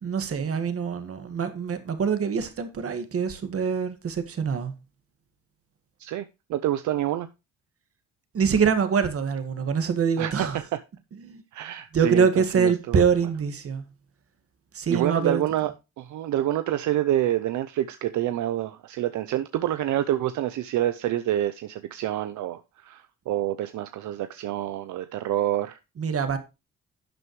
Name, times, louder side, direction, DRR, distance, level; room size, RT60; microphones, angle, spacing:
voice 1, 0.0-4.7 8.3-10.6 11.2-11.4 11.9-13.8 14.7-15.4 26.0-26.4, right 6 dB, 50° right, 1.9 m, -24 dB
voice 2, 6.0-7.3 10.2-10.8 11.5-12.3 12.5-13.0 14.9-25.8, right 12 dB, 75° right, 0.7 m, -27 dB
11.5 x 7.7 x 3.1 m
cardioid pair, 90°, 30 cm